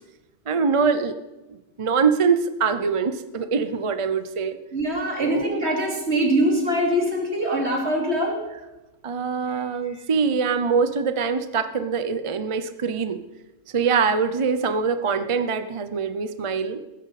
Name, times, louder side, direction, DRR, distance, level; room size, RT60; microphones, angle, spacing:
voice 1, 0.5-1.1 1.8-4.6 5.2-5.5 9.0-13.2 13.7-16.8, right 5 dB, 35° right, 10 dB, 0.5 m, -23 dB
voice 2, 4.7-8.3 9.5-9.6, right 1 dB, 55° right, 1 dB, 3.0 m, -23 dB
15.5 x 13.0 x 4.1 m, 1.1 s
omnidirectional pair, 1.3 m